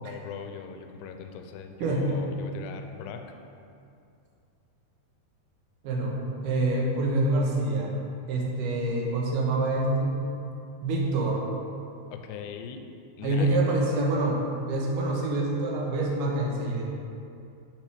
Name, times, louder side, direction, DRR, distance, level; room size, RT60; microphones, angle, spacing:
voice 1, 0.0-3.2 12.1-12.9 13.2-13.6, left 7 dB, 85° left, 5 dB, 2.6 m, -40 dB
voice 2, 1.8-2.2 5.8-7.9 8.3-10.2 10.8-11.4 13.2-16.8, right 2 dB, 70° right, -2 dB, 2.2 m, -26 dB
10.5 x 6.0 x 3.4 m, 2.6 s
omnidirectional pair, 4.8 m